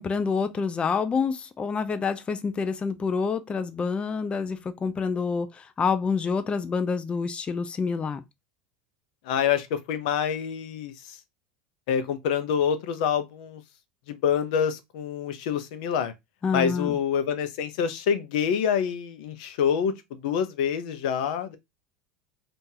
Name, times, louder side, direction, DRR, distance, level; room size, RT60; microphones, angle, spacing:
voice 1, 0.0-8.2 16.4-17.0, left 5 dB, 25° left, 0.5 m, -27 dB
voice 2, 9.2-11.2 11.9-13.6 14.1-16.1 16.5-21.6, left 8 dB, 70° left, 0.6 m, -26 dB
2.7 x 2.5 x 3.8 m
hypercardioid pair, 95°, 5 cm